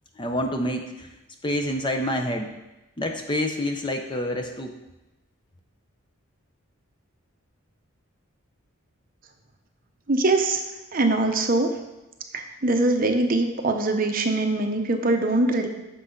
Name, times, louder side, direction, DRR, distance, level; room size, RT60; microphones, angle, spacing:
voice 1, 0.2-1.1 1.4-2.5 3.0-4.7, left 1 dB, 20° left, 4 dB, 0.6 m, -27 dB
voice 2, 10.1-10.6 10.9-11.7 12.3-15.7, right 2 dB, 40° right, 5 dB, 0.8 m, -22 dB
9.6 x 6.9 x 3.8 m, 1.0 s
head